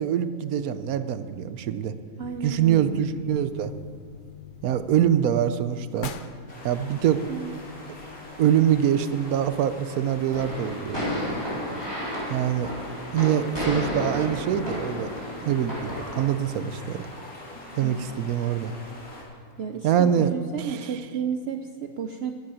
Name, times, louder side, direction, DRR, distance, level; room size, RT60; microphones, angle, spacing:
voice 1, 0.0-1.9 2.4-3.7 4.6-6.1 6.6-7.2 8.4-11.0 12.3-12.7 13.1-15.1 15.4-17.1 17.8-18.7 19.8-20.3 20.6-20.9, right 9 dB, 85° right, 12 dB, 1.1 m, -24 dB
sound 1, 2.2-9.9, left 8 dB, 50° left, 0.6 m, -45 dB
voice 2, 2.2-3.0 7.3-7.5 17.8-18.1 19.6-22.3, right 7 dB, 60° right, 7 dB, 0.7 m, -32 dB
sound 2, 6.5-19.2, left 1 dB, 75° left, 2.7 m, -43 dB
sound 3, 10.3-16.2, left 1 dB, 15° left, 4.2 m, -32 dB
9.6 x 9.0 x 10.0 m, 2.5 s
omnidirectional pair, 1.5 m